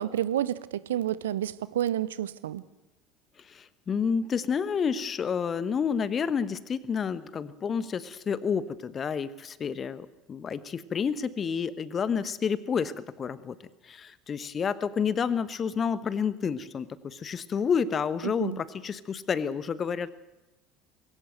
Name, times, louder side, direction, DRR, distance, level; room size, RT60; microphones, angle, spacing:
voice 1, 0.0-2.6 18.2-18.6, right 11 dB, 70° right, 0.7 m, -30 dB
voice 2, 3.5-13.6 13.8-20.1, left 6 dB, 30° left, 1.1 m, -29 dB
21.0 x 17.5 x 7.9 m
figure-of-eight pair, 65°, 0 cm